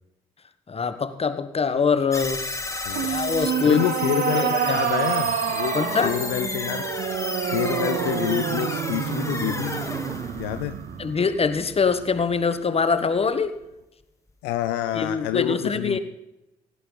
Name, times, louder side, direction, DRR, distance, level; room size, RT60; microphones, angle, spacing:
voice 1, 0.7-2.4 3.0-3.8 4.1-4.8 5.7-6.1 11.0-13.5 14.9-16.0, left 5 dB, 35° left, 11 dB, 1.3 m, -23 dB
sound 1, 2.1-11.4, left 2 dB, 15° left, 1.8 m, -32 dB
voice 2, 2.8-3.2 3.6-5.8 6.0-6.9 7.5-9.8 10.4-10.8 14.4-16.0, left 13 dB, 70° left, 11 dB, 0.5 m, -27 dB
sound 2, 2.9-12.3, right 10 dB, 55° right, 0.6 m, -28 dB
17.0 x 11.0 x 4.0 m, 0.89 s
figure-of-eight pair, 40°, 18 cm